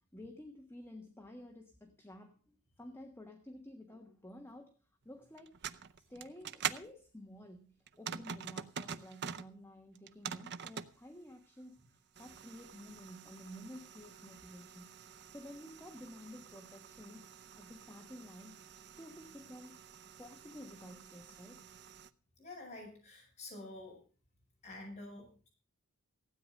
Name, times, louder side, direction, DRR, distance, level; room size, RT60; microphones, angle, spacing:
voice 1, 0.1-4.7 5.0-5.5 6.1-15.0 15.3-18.6 18.9-19.8 20.2-21.6, left 1 dB, 10° left, 3 dB, 1.4 m, -52 dB
sound 1, 5.4-6.9 7.9-9.5 9.9-10.9 12.2-22.1, right 8 dB, 50° right, 0.7 m, -46 dB
voice 2, 22.4-24.0 24.6-25.5, left 2 dB, 30° left, -2 dB, 7.2 m, -48 dB
16.0 x 9.2 x 6.4 m, 0.37 s
head